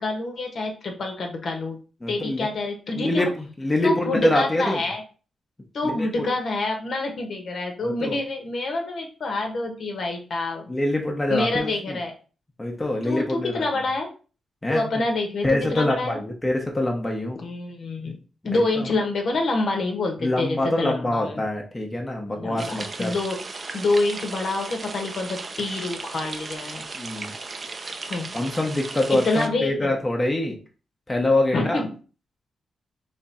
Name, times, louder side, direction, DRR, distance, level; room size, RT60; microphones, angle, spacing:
voice 1, 0.0-1.8 2.1-3.3 3.8-5.0 5.7-10.7 11.3-12.1 13.0-14.1 14.7-16.2 17.4-18.2 18.4-21.5 22.3-22.7 23.0-23.4 23.7-26.8 28.1-28.3 29.1-29.8 31.5-31.9, left 2 dB, 60° left, 2 dB, 1.2 m, -27 dB
voice 2, 2.0-2.5 2.9-4.8 5.9-6.3 7.8-8.2 10.7-12.0 12.6-13.6 14.6-14.8 15.4-17.4 18.5-18.9 20.2-23.1 27.0-27.3 28.3-30.6 31.1-31.8, left 1 dB, 15° left, 1 dB, 1.0 m, -25 dB
sound 1, 22.6-29.5, right 3 dB, 35° right, 0.6 m, -36 dB
3.6 x 3.3 x 4.2 m, 0.36 s
cardioid pair, 105°, 0 cm